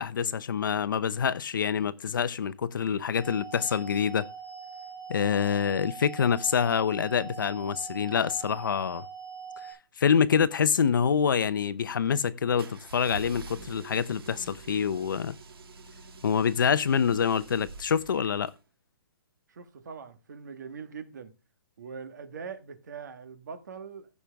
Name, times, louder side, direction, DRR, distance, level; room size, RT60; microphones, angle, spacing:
voice 1, 0.0-4.3 5.1-9.0 10.0-15.3 16.2-18.5, left 7 dB, 60° left, 0.7 m, -26 dB
sound 1, 3.2-9.7, right 6 dB, ahead, 6.7 m, -43 dB
Miata Start and Stop Exterior, 12.6-18.6, right 3 dB, 70° right, 1.6 m, -46 dB
voice 2, 19.5-21.3 21.8-24.1, right 6 dB, 50° right, 1.5 m, -42 dB
15.5 x 6.2 x 3.5 m
hypercardioid pair, 180°, 13 cm